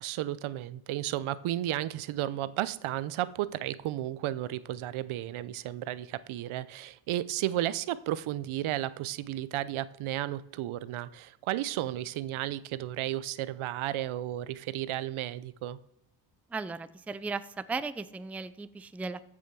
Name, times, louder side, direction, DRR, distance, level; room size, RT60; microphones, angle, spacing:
voice 1, 0.0-15.8, right 13 dB, 80° right, 17 dB, 0.8 m, -33 dB
voice 2, 16.5-19.3, right 4 dB, 5° right, 15 dB, 0.4 m, -36 dB
14.5 x 6.1 x 6.1 m, 0.81 s
cardioid pair, 110°, 48 cm